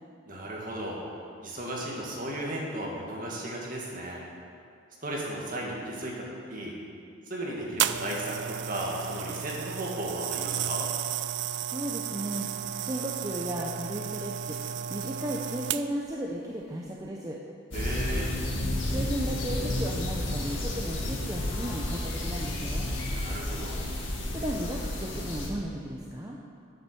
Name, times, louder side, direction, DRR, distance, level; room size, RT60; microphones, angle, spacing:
voice 1, 0.3-1.0 1.4-4.2 5.0-6.1 6.5-6.7 7.3-10.9 17.7-18.3 23.1-23.7, right 1 dB, 40° right, -3 dB, 2.0 m, -35 dB
sound 1, 7.8-16.1 16.9-17.1, right 9 dB, 60° right, 0.3 m, -33 dB
voice 2, 11.6-12.5 12.8-14.6 14.9-17.4 18.9-22.9 24.3-26.4, right 1 dB, 15° right, -2 dB, 0.6 m, -35 dB
sound 2, 17.7-25.5, left 1 dB, 65° left, 2.0 m, -31 dB
8.8 x 7.4 x 6.8 m, 2.3 s
head